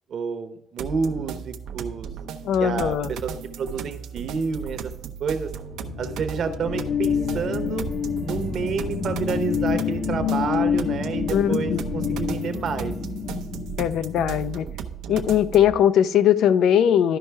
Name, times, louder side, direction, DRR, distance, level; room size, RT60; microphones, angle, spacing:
voice 1, 0.1-2.1 2.6-3.3 3.6-4.9 5.2-5.5 6.0-7.9 8.2-12.9, right 5 dB, 55° right, 8 dB, 0.9 m, -29 dB
sound 1, 0.8-15.8, right 7 dB, 90° right, 0.7 m, -35 dB
voice 2, 2.4-3.1 11.3-12.2 13.8-14.7 15.1-17.2, left 9 dB, 75° left, 13 dB, 0.4 m, -20 dB
sound 2, 5.5-14.7, left 7 dB, 55° left, 0.9 m, -28 dB
12.5 x 5.3 x 3.4 m, 0.81 s
cardioid pair, 130°, 0 cm